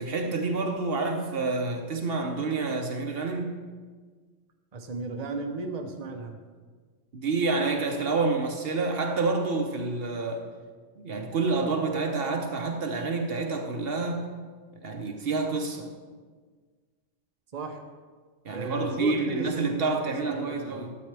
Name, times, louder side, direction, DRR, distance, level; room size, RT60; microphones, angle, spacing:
voice 1, 0.0-3.5 7.1-10.4 11.0-14.3 14.8-15.9 18.4-21.0, right 3 dB, 60° right, 3 dB, 1.0 m, -28 dB
voice 2, 4.7-6.4 17.5-17.8 18.5-20.9, right 2 dB, 40° right, 3 dB, 0.9 m, -35 dB
12.5 x 8.5 x 3.3 m, 1.5 s
omnidirectional pair, 1.2 m